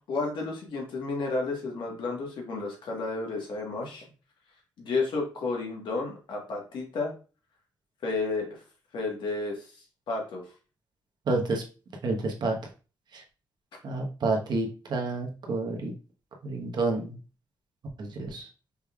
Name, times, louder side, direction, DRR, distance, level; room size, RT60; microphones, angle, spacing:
voice 1, 0.1-4.1 4.8-7.1 8.0-8.6 8.9-9.6 10.1-10.4, left 3 dB, 75° left, 0 dB, 1.3 m, -31 dB
voice 2, 11.3-11.6 12.0-12.5 13.1-13.2 13.8-15.9 16.4-17.1 18.0-18.5, right 3 dB, 60° right, 1 dB, 1.1 m, -29 dB
5.2 x 3.4 x 2.3 m, 0.35 s
cardioid pair, 90°, 8 cm